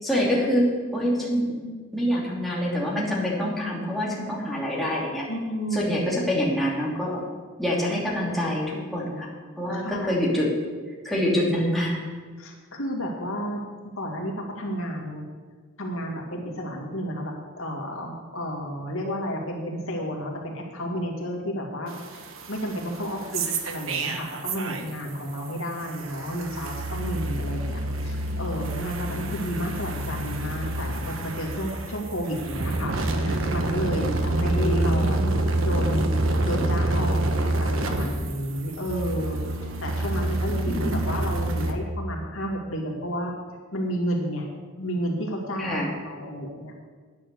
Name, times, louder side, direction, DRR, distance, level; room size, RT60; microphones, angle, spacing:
voice 1, 0.0-1.6 1.9-5.3 5.7-7.2 7.6-9.3 9.6-10.5 11.0-12.0 34.3-35.3 40.7-41.1 45.6-45.9, equal, ahead, -6 dB, 2.7 m, -26 dB
voice 2, 5.3-5.9 9.7-10.1 12.4-13.6 14.0-15.2 15.8-33.0 33.2-35.2 35.6-39.4 39.8-44.5 44.8-46.8, equal, 75° left, -1 dB, 2.4 m, -31 dB
sound 1, 21.9-25.1 25.4-41.7, right 1 dB, 70° right, 1.2 m, -27 dB
10.0 x 9.8 x 6.8 m, 1.5 s
head